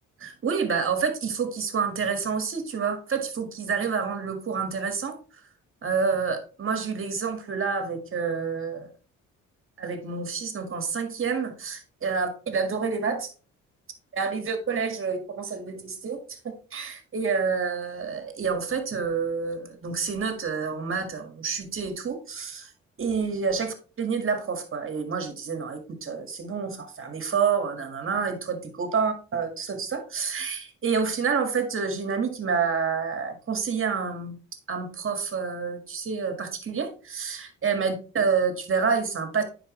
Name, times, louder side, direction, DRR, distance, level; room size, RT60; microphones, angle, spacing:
voice 1, 0.2-5.2 5.8-8.9 9.8-13.3 14.1-22.7 23.0-34.4 34.7-39.4, right 5 dB, 45° right, 6 dB, 1.9 m, -28 dB
9.9 x 4.9 x 3.1 m, 0.37 s
cardioid pair, 90°, 30 cm